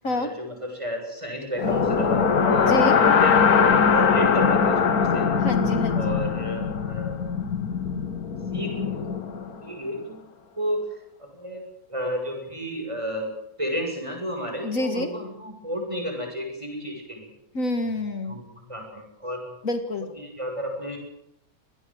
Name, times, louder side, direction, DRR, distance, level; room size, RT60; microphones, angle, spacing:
voice 1, 0.0-5.3 5.9-7.1 8.5-9.1 9.6-10.2 10.6-13.3 13.6-17.3 18.3-19.5 20.0-21.0, equal, 20° right, 2 dB, 7.7 m, -32 dB
sound 1, 1.6-9.6, left 6 dB, 80° left, 2.0 m, -21 dB
voice 2, 2.7-3.0 5.4-6.1 14.6-15.1 17.5-18.4 19.6-20.1, left 1 dB, 60° left, 7 dB, 2.3 m, -27 dB
25.0 x 19.5 x 8.0 m, 0.77 s
omnidirectional pair, 1.6 m